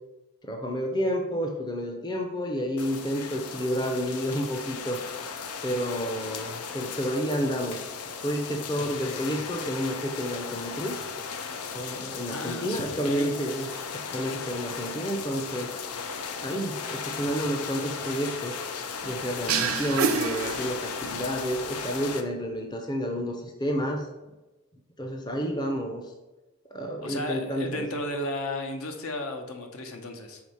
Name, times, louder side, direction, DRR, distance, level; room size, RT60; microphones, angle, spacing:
voice 1, 0.4-5.0 5.6-7.8 8.2-11.0 11.7-13.7 13.9-15.7 16.4-18.6 19.0-24.1 25.0-26.1 26.7-27.9, equal, 20° left, 2 dB, 0.6 m, -30 dB
sound 1, 2.8-22.2, left 5 dB, 85° left, 0.6 m, -36 dB
voice 2, 8.7-9.4 12.3-13.3 27.0-30.4, left 1 dB, 70° left, 4 dB, 0.9 m, -34 dB
sound 2, 19.5-21.2, right 5 dB, 70° right, 0.5 m, -28 dB
4.8 x 3.8 x 5.5 m, 1.1 s
head